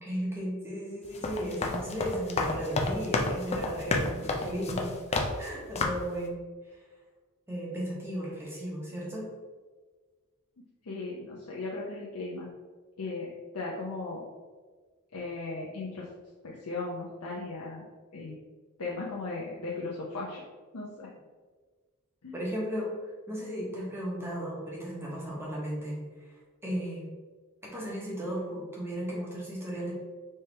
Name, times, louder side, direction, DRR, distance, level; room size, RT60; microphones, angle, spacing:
voice 1, 0.0-4.9 5.4-6.4 7.5-9.3 22.3-22.9 23.3-26.0 26.6-27.1 27.6-29.9, equal, 10° right, -4 dB, 1.1 m, -35 dB
sound 1, 1.0-5.5 5.7-6.1, left 3 dB, 30° left, 0.4 m, -31 dB
voice 2, 10.8-12.5 13.0-14.2 15.1-16.1 16.4-17.8 18.1-18.3 18.8-20.4 20.7-21.1 22.2-22.4, left 3 dB, 85° left, -5 dB, 0.7 m, -37 dB
4.3 x 3.5 x 3.3 m, 1.4 s
head